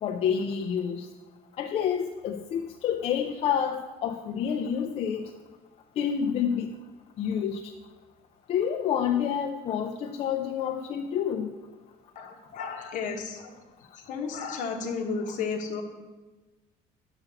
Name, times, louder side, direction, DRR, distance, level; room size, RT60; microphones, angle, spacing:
voice 1, 0.0-1.1 1.6-5.2 6.0-6.7 7.2-7.6 8.5-11.5, left 8 dB, 40° left, 3 dB, 0.4 m, -28 dB
voice 2, 12.1-13.6 13.9-15.8, left 5 dB, 55° left, 4 dB, 1.1 m, -33 dB
5.8 x 5.6 x 6.9 m, 1.2 s
cardioid pair, 170°, 15 cm